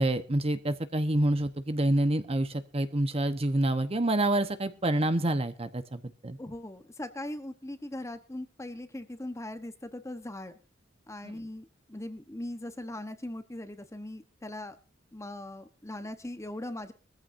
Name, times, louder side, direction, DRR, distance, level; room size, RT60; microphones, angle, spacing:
voice 1, 0.0-6.4 11.2-11.3, right 1 dB, 30° right, 10 dB, 1.1 m, -27 dB
voice 2, 6.4-10.5 11.1-14.8 15.1-16.9, left 1 dB, 15° left, 9 dB, 1.1 m, -40 dB
21.0 x 14.5 x 2.7 m, 0.34 s
head